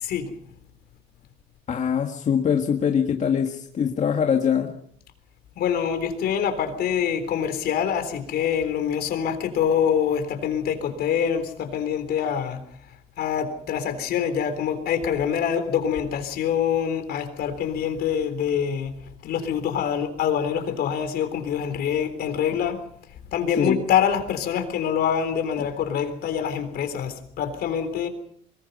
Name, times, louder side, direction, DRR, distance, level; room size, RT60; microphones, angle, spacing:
voice 1, 0.0-0.3 5.6-12.6 13.2-18.9 19.2-22.8 23.3-28.1, left 8 dB, 70° left, 8 dB, 3.8 m, -25 dB
voice 2, 1.7-4.7 23.6-23.8, left 7 dB, 45° left, 3 dB, 1.8 m, -23 dB
23.5 x 21.5 x 5.5 m, 0.66 s
cardioid pair, 110°, 17 cm